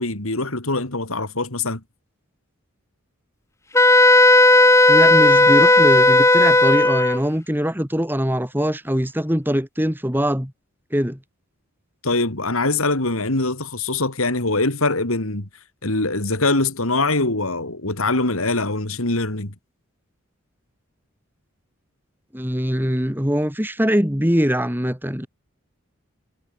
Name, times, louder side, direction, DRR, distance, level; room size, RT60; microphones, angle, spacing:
voice 1, 0.0-1.8 12.0-15.5 15.8-19.5, left 2 dB, 80° left, 3.7 m, -23 dB
Wind instrument woodwind instrument, 3.7-7.2, left 2 dB, 15° left, 2.8 m, -13 dB
voice 2, 4.9-10.5 10.9-11.2 22.3-25.3, equal, 10° right, 3.2 m, -22 dB
head